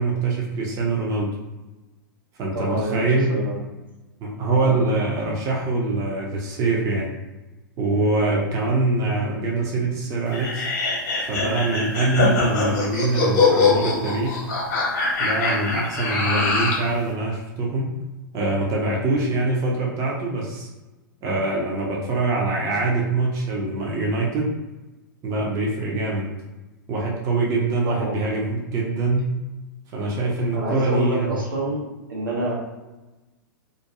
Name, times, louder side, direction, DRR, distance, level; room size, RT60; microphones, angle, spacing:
voice 1, 0.0-1.4 2.4-3.3 4.2-7.1 7.8-10.7 11.2-14.4 15.2-17.9 18.3-20.7 21.2-24.5 25.2-26.3 26.9-29.3 29.9-31.4, right 2 dB, 30° right, -2 dB, 0.6 m, -24 dB
voice 2, 2.5-3.0 3.3-3.6 4.6-4.8 8.3-8.5 27.9-28.2 30.5-31.8 32.1-32.5, right 1 dB, 80° right, -5 dB, 1.0 m, -27 dB
sound 1, 10.3-16.9, left 4 dB, 50° left, 0.8 m, -22 dB
2.4 x 2.2 x 2.7 m, 1.1 s
figure-of-eight pair, 100°, 11 cm